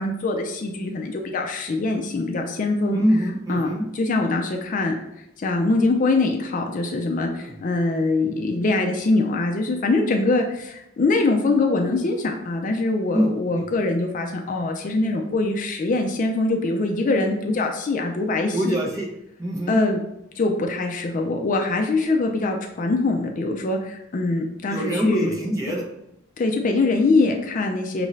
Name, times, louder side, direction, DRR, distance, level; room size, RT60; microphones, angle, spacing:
voice 1, 0.0-3.0 3.5-4.9 5.4-18.8 19.7-20.0 20.4-25.3 26.4-28.1, left 2 dB, 40° left, 3 dB, 0.4 m, -23 dB
voice 2, 2.9-3.8 7.4-7.6 13.1-13.3 13.5-13.6 18.5-19.1 19.4-19.8 24.7-25.8, equal, 15° right, -2 dB, 0.8 m, -24 dB
5.3 x 2.6 x 3.1 m, 0.84 s
head